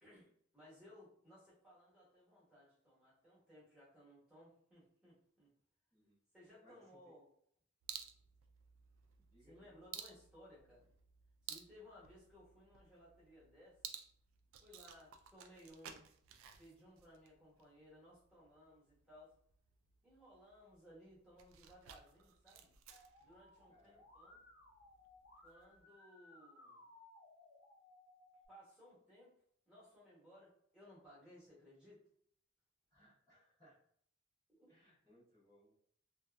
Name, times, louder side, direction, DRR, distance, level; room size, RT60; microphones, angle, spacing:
voice 1, 0.0-5.5 6.3-7.3 9.4-10.8 11.4-13.8 14.6-16.0 16.6-19.3 20.0-22.7 23.2-24.4 25.4-26.8 28.5-29.3 29.7-32.0 34.6-34.7, equal, 5° right, -8 dB, 1.1 m, -61 dB
voice 2, 6.6-7.1 9.2-9.8 23.7-24.0 32.9-33.8 34.7-35.7, left 1 dB, 20° left, -12 dB, 0.8 m, -68 dB
sound 1, 7.8-25.8, right 9 dB, 80° right, 0.3 m, -56 dB
Musical instrument, 22.9-28.5, left 2 dB, 60° left, 0.8 m, -63 dB
2.8 x 2.3 x 2.2 m, 0.65 s
head